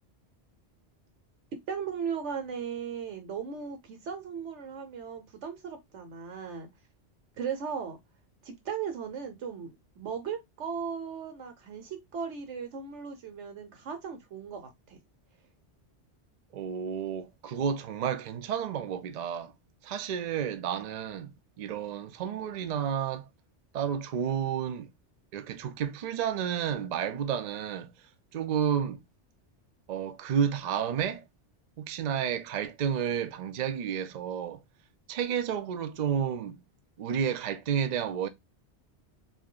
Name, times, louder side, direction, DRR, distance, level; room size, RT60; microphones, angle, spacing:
voice 1, 1.7-6.7 7.4-8.0 8.4-15.0, right 7 dB, 85° right, 1.2 m, -37 dB
voice 2, 16.5-19.5 19.8-21.3 21.6-23.3 23.7-24.9 25.3-27.9 28.3-29.0 29.9-31.2 31.8-34.6 35.1-36.6 37.0-38.3, right 8 dB, 60° right, 0.4 m, -31 dB
2.8 x 2.6 x 3.7 m
omnidirectional pair, 1.2 m